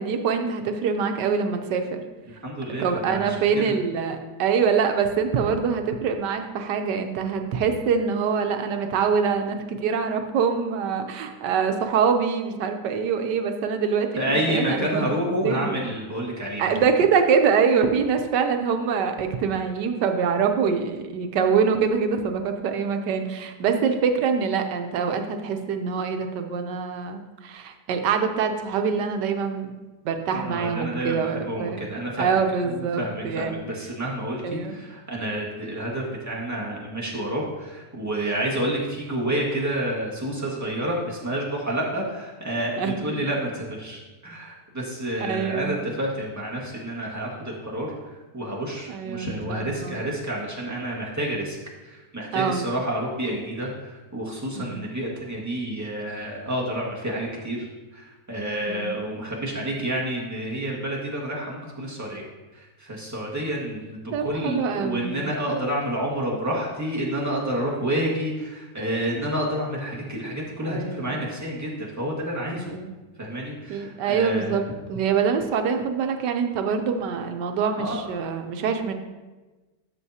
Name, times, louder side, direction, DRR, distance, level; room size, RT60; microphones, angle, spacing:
voice 1, 0.0-2.0 2.8-15.0 15.4-15.8 16.6-29.7 30.0-31.9 32.2-33.5 34.4-34.8 42.8-43.2 45.2-45.9 48.9-50.0 52.3-52.7 54.6-54.8 58.7-58.9 64.1-65.3 70.6-71.2 72.5-72.9 73.7-74.6 74.9-78.9, right 6 dB, 85° right, 6 dB, 1.4 m, -24 dB
voice 2, 2.4-3.7 14.1-16.7 30.3-32.3 32.6-47.9 48.3-51.6 51.8-57.7 57.9-62.2 62.5-72.8 73.2-74.6 77.8-78.1, right 1 dB, 10° right, -4 dB, 1.5 m, -29 dB
12.5 x 6.4 x 2.8 m, 1.2 s
omnidirectional pair, 1.8 m